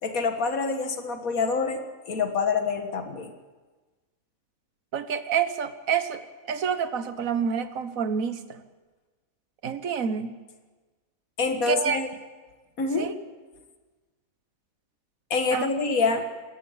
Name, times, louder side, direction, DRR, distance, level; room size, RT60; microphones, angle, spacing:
voice 1, 0.0-3.3 11.4-12.1 12.8-13.1 15.3-16.3, left 4 dB, 75° left, 6 dB, 2.1 m, -26 dB
voice 2, 4.9-6.2 6.5-8.4 9.6-10.3 11.7-12.0 13.0-13.1 15.5-15.7, right 7 dB, 70° right, 10 dB, 1.6 m, -27 dB
21.0 x 17.0 x 8.9 m, 1.3 s
omnidirectional pair, 1.5 m